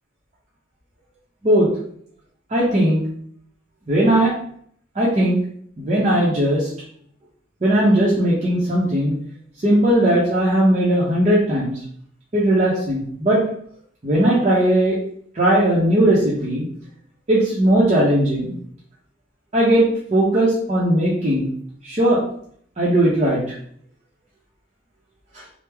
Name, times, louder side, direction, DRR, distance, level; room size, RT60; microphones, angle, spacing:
voice 1, 2.5-3.0 3.9-4.3 4.9-5.4 5.8-6.7 7.6-9.1 9.6-11.7 12.3-13.4 14.0-15.0 15.3-16.6 17.3-18.6 19.5-21.5 21.8-22.2 22.8-23.4 25.3-25.4, right 1 dB, 35° right, -7 dB, 0.6 m, -18 dB
3.3 x 2.0 x 3.3 m, 0.63 s
head